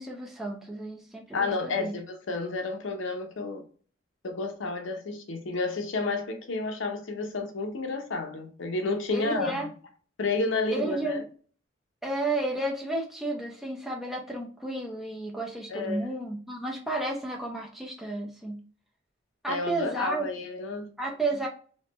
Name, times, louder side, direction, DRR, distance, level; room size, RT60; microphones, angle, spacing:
voice 1, 0.0-1.9 9.1-9.7 10.7-11.2 12.0-18.6 19.4-20.3 21.0-21.5, right 2 dB, ahead, 0.6 m, -32 dB
voice 2, 1.3-3.6 4.2-9.6 10.2-11.2 15.7-16.1 19.5-20.9, left 3 dB, 65° left, 0.6 m, -31 dB
3.1 x 2.1 x 2.9 m
head